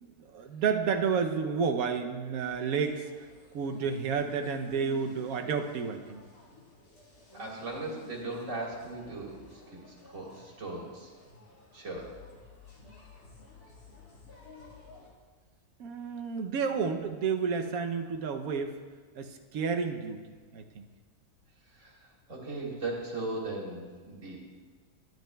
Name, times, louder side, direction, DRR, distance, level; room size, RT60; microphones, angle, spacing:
voice 1, 0.0-3.3 3.5-6.2 15.8-18.7 19.1-20.8, right 6 dB, 70° right, 5 dB, 1.1 m, -31 dB
sound 1, 2.4-15.1, left 3 dB, 70° left, 2.1 m, -53 dB
voice 2, 7.3-11.1 11.7-12.1 21.6-24.4, right 2 dB, 50° right, -3 dB, 2.0 m, -38 dB
13.0 x 10.5 x 2.2 m, 1.5 s
omnidirectional pair, 1.7 m